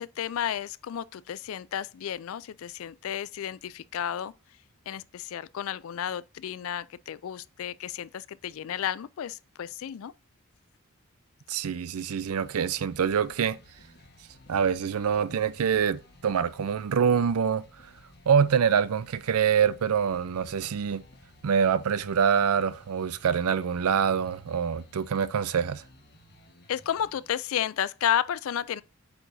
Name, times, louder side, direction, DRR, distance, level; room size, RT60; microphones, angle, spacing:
voice 1, 0.0-4.3 4.9-10.1 26.7-28.8, left 9 dB, 65° left, 0.3 m, -32 dB
voice 2, 11.5-13.6 14.5-17.6 18.3-21.0 21.4-25.8, right 7 dB, 80° right, 0.4 m, -25 dB
sound 1, 12.2-27.3, left 1 dB, 45° left, 1.4 m, -56 dB
8.7 x 4.6 x 2.6 m
head